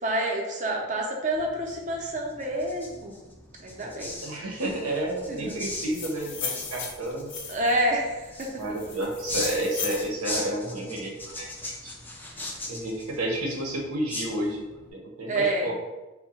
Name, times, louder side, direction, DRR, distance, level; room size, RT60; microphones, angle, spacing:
voice 1, 0.0-3.2 3.6-4.1 5.3-5.6 7.5-8.5 15.3-15.7, right 1 dB, 35° right, 0 dB, 0.6 m, -28 dB
sound 1, 1.3-14.9, left 2 dB, 10° left, 0.3 m, -40 dB
voice 2, 4.2-7.3 8.6-11.9 12.7-14.6 14.9-15.7, right 1 dB, 85° right, -1 dB, 0.8 m, -31 dB
sound 2, 5.7-7.8 8.4-10.1, left 6 dB, 55° left, 0.6 m, -36 dB
3.6 x 2.2 x 4.2 m, 1.1 s
head